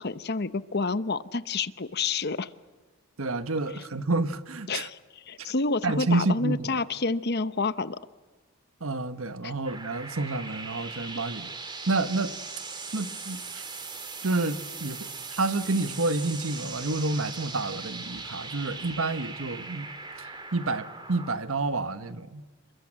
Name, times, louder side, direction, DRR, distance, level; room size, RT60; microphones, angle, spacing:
voice 1, 0.0-2.5 4.7-8.0 9.4-9.5, left 3 dB, 50° left, 14 dB, 0.9 m, -29 dB
voice 2, 3.2-4.9 5.8-6.8 8.8-11.5 11.9-12.3 12.9-13.6 14.2-15.1 15.3-19.9 20.2-22.4, right 2 dB, 70° right, 11 dB, 1.3 m, -29 dB
sound 1, 9.6-21.3, right 4 dB, 20° right, 2.9 m, -39 dB
29.0 x 22.5 x 7.6 m, 1.3 s
head